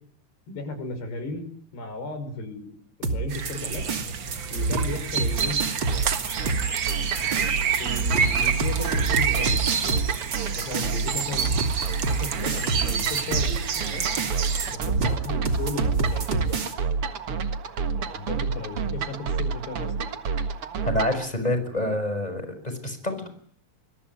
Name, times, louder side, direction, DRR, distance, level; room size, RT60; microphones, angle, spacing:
voice 1, 0.5-3.8 4.5-5.6 7.8-9.6 10.5-11.5 11.9-14.0 14.7-16.6 17.9-20.1, left 2 dB, 85° left, 7 dB, 8.1 m, -35 dB
sound 1, 3.0-16.7, right 4 dB, 35° right, 2.6 m, -28 dB
sound 2, 3.3-14.8, right 6 dB, 75° right, 1.1 m, -28 dB
sound 3, 5.4-21.2, right 5 dB, 50° right, 1.8 m, -30 dB
voice 2, 20.8-23.3, left 1 dB, 10° left, 9 dB, 5.7 m, -27 dB
27.5 x 22.0 x 9.7 m, 0.64 s
omnidirectional pair, 4.6 m